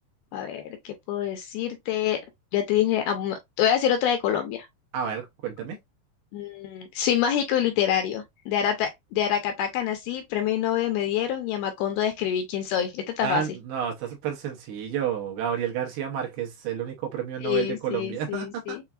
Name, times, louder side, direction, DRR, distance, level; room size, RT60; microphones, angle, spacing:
voice 1, 0.3-2.2 2.5-4.7 6.3-13.4 17.4-18.8, left 10 dB, 80° left, 2.4 m, -26 dB
voice 2, 4.9-5.8 13.2-18.8, right 8 dB, 75° right, 2.6 m, -30 dB
7.0 x 2.5 x 2.4 m
omnidirectional pair, 4.9 m